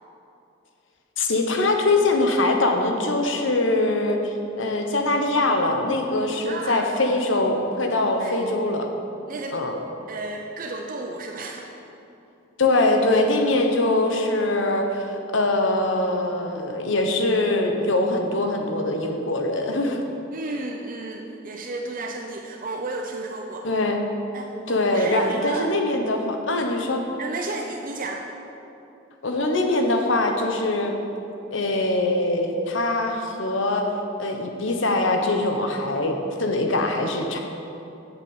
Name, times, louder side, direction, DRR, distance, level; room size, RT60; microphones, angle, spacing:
voice 1, 1.2-8.9 9.5-9.8 12.6-20.0 23.6-24.0 24.7-27.0 29.2-30.9 31.5-33.9 34.2-37.4, left 2 dB, 70° left, 3 dB, 1.1 m, -23 dB
voice 2, 6.4-6.9 8.1-8.4 9.3-9.6 10.1-11.7 20.3-23.7 24.3-25.7 27.2-28.2, right 2 dB, 45° right, 1 dB, 0.7 m, -32 dB
8.6 x 7.4 x 7.4 m, 2.9 s
head